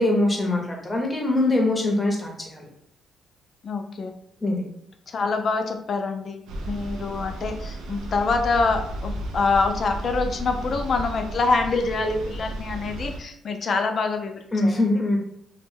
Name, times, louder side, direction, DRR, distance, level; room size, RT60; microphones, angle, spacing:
voice 1, 0.0-2.7 4.4-4.6 14.5-15.2, left 2 dB, 20° left, 0 dB, 0.7 m, -23 dB
voice 2, 3.6-4.1 5.1-14.7, left 4 dB, 50° left, 6 dB, 0.3 m, -25 dB
sound 1, 6.5-13.2, right 1 dB, 90° right, 0.4 m, -33 dB
2.1 x 2.1 x 3.2 m, 0.71 s
cardioid pair, 90°, 0 cm